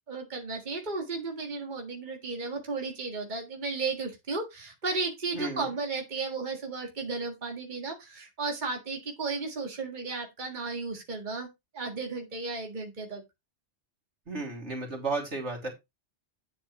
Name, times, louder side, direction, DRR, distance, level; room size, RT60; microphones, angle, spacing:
voice 1, 0.1-11.5 11.7-13.2, right 3 dB, 40° right, 2 dB, 2.0 m, -34 dB
voice 2, 5.3-5.7 14.3-15.7, right 3 dB, 85° right, -1 dB, 3.4 m, -33 dB
9.4 x 7.8 x 3.2 m, 0.22 s
omnidirectional pair, 1.2 m